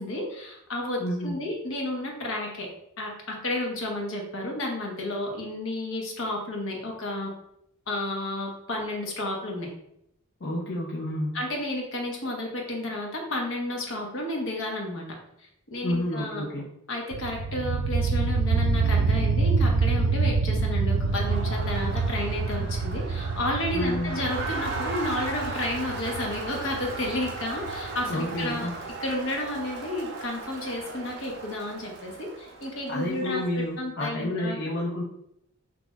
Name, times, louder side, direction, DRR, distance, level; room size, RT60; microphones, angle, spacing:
voice 1, 0.0-2.7 3.0-7.3 7.9-9.7 11.3-15.1 15.4-16.5 16.9-34.7, left 1 dB, 80° left, 0 dB, 1.0 m, -32 dB
voice 2, 1.0-1.4 10.4-11.4 15.8-16.7 22.6-22.7 23.7-24.2 28.0-28.7 32.9-35.0, left 1 dB, 55° left, -3 dB, 0.5 m, -30 dB
sound 1, 17.1-28.7, right 4 dB, 85° right, 0.3 m, -27 dB
Crowd, 20.9-33.5, right 3 dB, 55° right, 0.8 m, -37 dB
6.0 x 2.9 x 2.3 m, 0.77 s
head